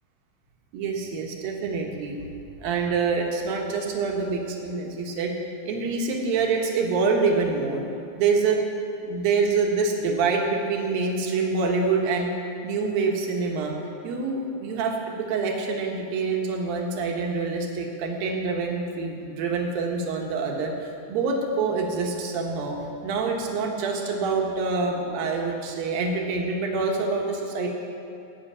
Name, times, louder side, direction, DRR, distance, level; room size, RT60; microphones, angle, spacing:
voice 1, 0.7-2.2 2.6-5.3 5.7-7.8 8.2-8.6 9.0-12.3 12.6-13.7 14.0-22.8 23.0-27.7, right 4 dB, 65° right, 0 dB, 2.4 m, -26 dB
18.5 x 6.5 x 8.6 m, 2.7 s
omnidirectional pair, 6.0 m